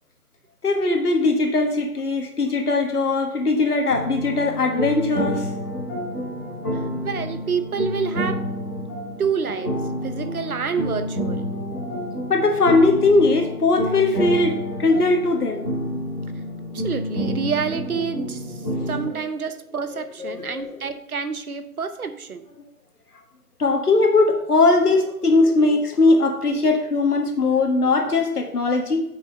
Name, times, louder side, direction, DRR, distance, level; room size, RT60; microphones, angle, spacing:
voice 1, 0.6-5.4 12.3-15.7 20.2-20.8 23.6-29.0, left 3 dB, 75° left, 3 dB, 1.6 m, -20 dB
sound 1, 3.9-19.1, equal, 10° left, 1.8 m, -29 dB
voice 2, 7.0-8.4 9.2-9.8 10.0-11.4 16.7-18.6 18.9-22.4, right 6 dB, 70° right, 10 dB, 0.9 m, -28 dB
6.2 x 4.8 x 5.3 m, 0.80 s
hypercardioid pair, 180°, 46 cm